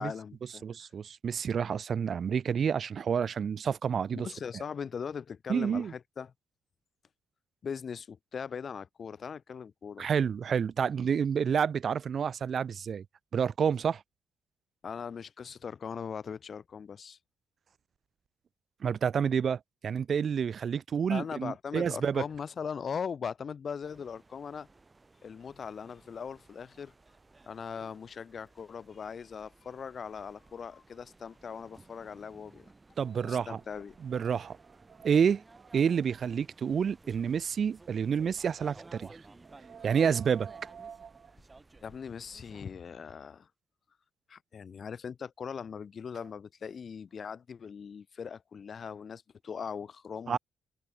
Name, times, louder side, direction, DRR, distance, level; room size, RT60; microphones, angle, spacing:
voice 1, 0.0-0.9 4.1-6.3 7.6-10.1 14.8-17.2 21.1-24.7 25.2-26.9 27.5-32.7 33.2-34.0 39.8-39.9 41.8-43.5 44.3-50.4, left 6 dB, 45° left, 0.8 m, -40 dB
voice 2, 0.6-4.3 5.5-5.9 10.0-13.0 13.3-14.0 18.8-22.2 33.0-33.6 34.0-34.6 35.0-35.4 35.7-39.1 39.7-41.1 50.3-50.4, right 7 dB, 50° right, 0.6 m, -29 dB
sound 1, 23.8-42.6, right 3 dB, 20° right, 2.8 m, -57 dB
cardioid pair, 90°, 0 cm